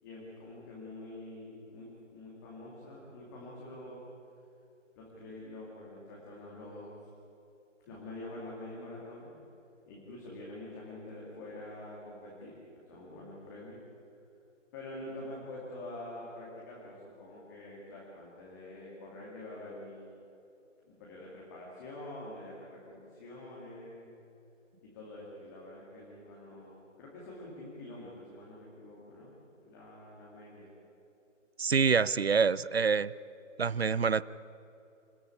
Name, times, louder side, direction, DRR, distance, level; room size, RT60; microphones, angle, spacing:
voice 1, 0.0-4.0 5.0-7.0 7.9-9.3 9.9-12.6 12.9-13.8 14.7-20.2 20.8-24.0 24.8-30.7, left 1 dB, 15° left, -4 dB, 2.4 m, -46 dB
voice 2, 31.6-33.1 33.6-34.2, right 5 dB, 55° right, 20 dB, 0.5 m, -26 dB
27.0 x 13.5 x 8.5 m, 2.8 s
figure-of-eight pair, 155°, 38 cm